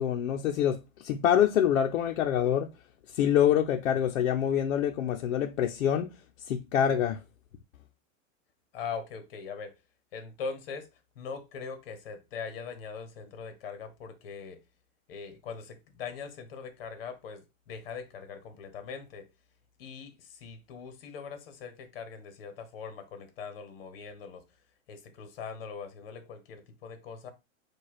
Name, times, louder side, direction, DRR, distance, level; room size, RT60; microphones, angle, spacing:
voice 1, 0.0-2.7 3.1-6.1 6.4-7.2, left 9 dB, 65° left, 0.6 m, -26 dB
voice 2, 8.7-9.7 10.1-10.9 11.2-14.6 15.1-19.3 19.8-24.4 24.9-27.3, left 5 dB, 45° left, 1.0 m, -41 dB
4.9 x 2.3 x 4.1 m
supercardioid pair, 175°, 40 cm